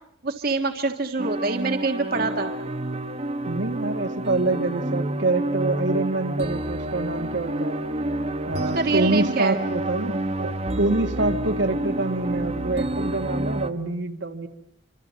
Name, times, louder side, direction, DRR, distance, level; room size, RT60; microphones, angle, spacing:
voice 1, 0.2-2.5 8.7-9.6, right 3 dB, 50° right, 4 dB, 1.6 m, -25 dB
sound 1, 1.2-13.7, right 1 dB, 30° right, 1.2 m, -29 dB
voice 2, 3.5-7.8 8.5-14.5, right 2 dB, 65° right, 5 dB, 1.9 m, -26 dB
26.5 x 26.0 x 7.6 m, 0.76 s
head